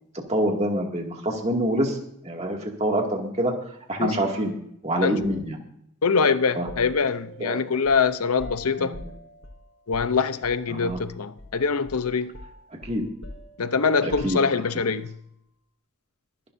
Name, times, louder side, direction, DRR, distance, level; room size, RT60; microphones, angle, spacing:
voice 1, 0.3-2.0 2.2-3.5 3.9-4.5 4.8-5.6 6.6-6.7 7.4-7.7 8.8-9.0 10.7-11.0 12.9-13.0 14.0-14.4, right 1 dB, 30° right, 2.3 m, -26 dB
voice 2, 5.0-5.3 6.0-9.0 9.9-12.3 13.6-15.1, left 5 dB, 90° left, 0.8 m, -24 dB
sound 1, 6.7-11.1 11.4-11.6 11.9-14.8, equal, 70° left, 3.7 m, -43 dB
23.5 x 11.5 x 2.7 m
head